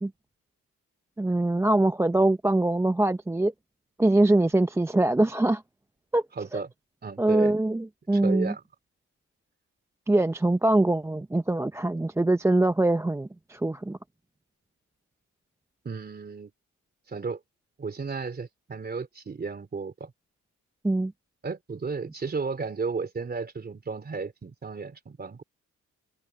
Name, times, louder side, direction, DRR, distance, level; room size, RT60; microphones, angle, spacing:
voice 1, 1.2-3.5 4.0-5.6 6.1-6.2 6.5-6.6 7.2-8.5 10.1-14.0 20.8-21.1, right 2 dB, 10° right, 0.6 m, -23 dB
voice 2, 6.3-6.7 7.0-7.6 8.1-8.6 15.8-16.5 17.1-17.4 17.8-20.1 21.4-25.4, right 4 dB, 30° right, 3.1 m, -33 dB
cardioid pair, 110°, 31 cm